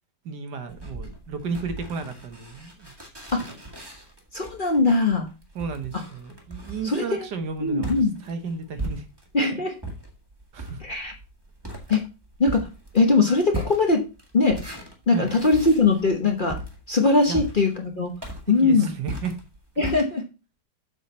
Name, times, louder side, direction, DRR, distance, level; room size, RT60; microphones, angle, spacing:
voice 1, 0.2-2.9 5.5-9.1 10.5-10.8 15.1-15.3 17.3-17.4 18.6-19.3, right 5 dB, 75° right, 7 dB, 1.7 m, -33 dB
sound 1, 0.7-9.4 9.8-20.0, right 1 dB, 15° right, 1.5 m, -38 dB
voice 2, 4.3-5.3 6.8-7.0 7.6-8.1 9.3-9.7 10.8-11.1 11.9-12.1 12.4-12.7 12.9-14.0 14.3-14.6 15.1-16.6 16.9-18.1 18.5-18.9 19.8-20.2, left 3 dB, 35° left, 3 dB, 1.0 m, -21 dB
7.4 x 5.7 x 4.3 m, 0.30 s
omnidirectional pair, 1.9 m